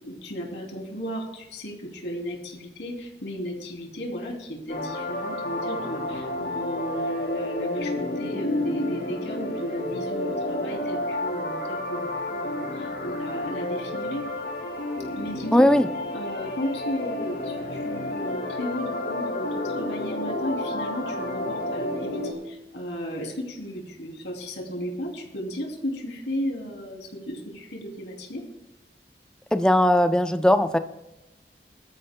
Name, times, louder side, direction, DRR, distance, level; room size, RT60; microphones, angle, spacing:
voice 1, 0.0-14.3 15.1-15.7 16.1-28.4, equal, 85° left, 0 dB, 3.1 m, -34 dB
sound 1, 4.7-22.3, left 1 dB, 65° left, 2.6 m, -30 dB
voice 2, 15.5-15.9 29.5-30.8, left 1 dB, 5° left, 9 dB, 0.5 m, -18 dB
21.5 x 13.0 x 2.2 m, 0.96 s
head